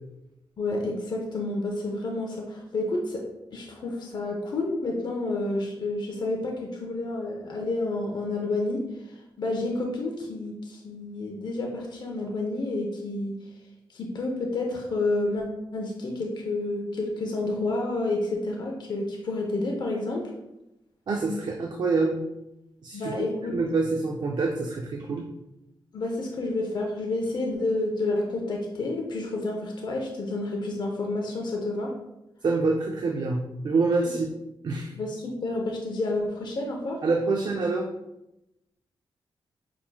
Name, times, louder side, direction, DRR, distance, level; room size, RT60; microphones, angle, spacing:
voice 1, 0.6-3.2 3.5-8.8 9.4-13.3 13.9-15.4 15.7-20.2 22.9-23.5 25.9-31.9 34.9-37.0, left 2 dB, 55° left, 0 dB, 0.7 m, -29 dB
voice 2, 21.1-22.2 22.8-23.2 23.5-25.2 32.4-34.3 34.6-34.9 37.0-37.9, right 3 dB, 50° right, 1 dB, 0.5 m, -26 dB
5.9 x 3.7 x 2.2 m, 0.90 s
wide cardioid pair, 125°, 9 cm